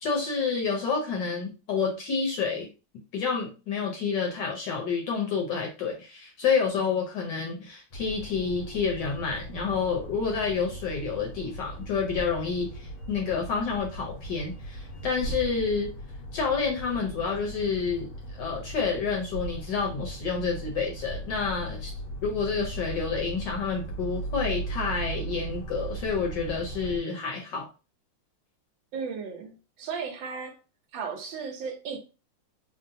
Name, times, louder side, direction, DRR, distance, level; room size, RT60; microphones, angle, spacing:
voice 1, 0.0-2.7 3.1-15.9 16.3-18.1 18.4-21.9 22.2-27.7, left 5 dB, 65° left, 1.2 m, -29 dB
sound 1, 7.9-27.0, right 2 dB, 85° left, 1.7 m, -38 dB
voice 2, 28.9-30.6 30.9-32.0, right 5 dB, 70° right, 1.3 m, -35 dB
3.8 x 2.1 x 2.6 m
omnidirectional pair, 2.3 m